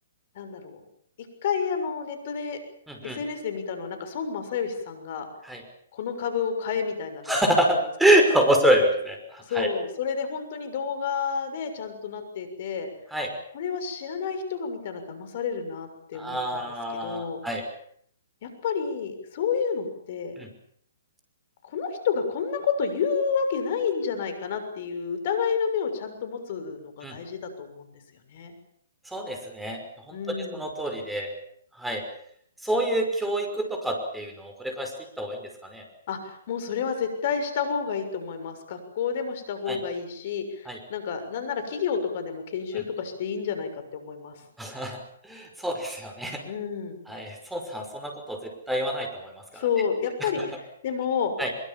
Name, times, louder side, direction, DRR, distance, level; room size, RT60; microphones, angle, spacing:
voice 1, 0.3-0.8 1.4-2.6 3.0-5.3 5.9-7.4 7.7-7.8 9.5-12.9 13.5-16.7 17.0-17.4 18.4-20.3 21.6-27.9 28.3-28.5 30.1-30.6 36.1-44.3 46.4-47.0 49.5-51.3, left 6 dB, 50° left, 8 dB, 6.6 m, -30 dB
voice 2, 2.9-3.2 5.4-5.6 7.3-9.7 13.1-13.3 16.1-17.6 20.4-20.5 27.0-27.2 29.1-29.8 30.1-31.3 31.8-32.0 32.6-35.8 39.7-39.8 40.7-40.8 42.7-42.8 44.6-45.0 45.2-46.4 47.1-49.6 50.2-50.5 51.4-51.5, right 1 dB, 5° right, 4 dB, 5.6 m, -26 dB
24.0 x 23.0 x 7.4 m, 0.65 s
hypercardioid pair, 130°, 0 cm